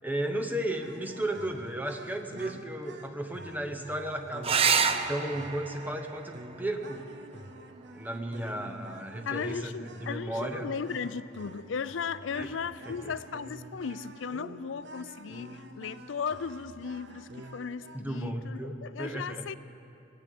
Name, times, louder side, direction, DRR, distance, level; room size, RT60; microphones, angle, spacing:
voice 1, 0.0-4.6 5.1-7.1 7.9-10.7 12.3-12.5 12.8-13.1 17.9-19.5, right 1 dB, 10° right, 4 dB, 1.1 m, -34 dB
sound 1, 0.8-18.0, right 2 dB, 65° right, 0.9 m, -48 dB
sound 2, 4.4-9.5 11.3-12.0 15.4-15.5 15.9-16.0, right 6 dB, 30° right, 0.6 m, -31 dB
voice 2, 9.3-19.5, left 6 dB, 80° left, 15 dB, 0.5 m, -36 dB
19.0 x 8.3 x 8.4 m, 2.8 s
head